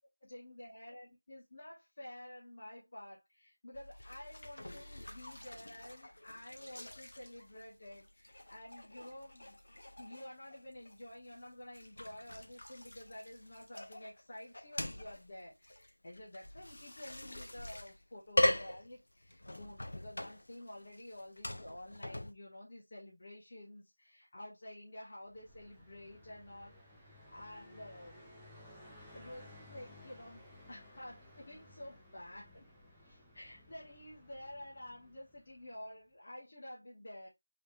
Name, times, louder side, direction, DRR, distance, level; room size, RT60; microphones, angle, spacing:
voice 1, 0.2-9.6 10.0-28.3 29.1-32.7 33.0-37.3, left 1 dB, 35° left, 1.4 m, -51 dB
sound 1, 3.7-22.3, left 1 dB, 55° left, 0.9 m, -41 dB
Car passing by, 25.3-35.9, left 1 dB, ahead, 0.6 m, -58 dB
4.2 x 4.0 x 3.2 m
figure-of-eight pair, 170°, 0 cm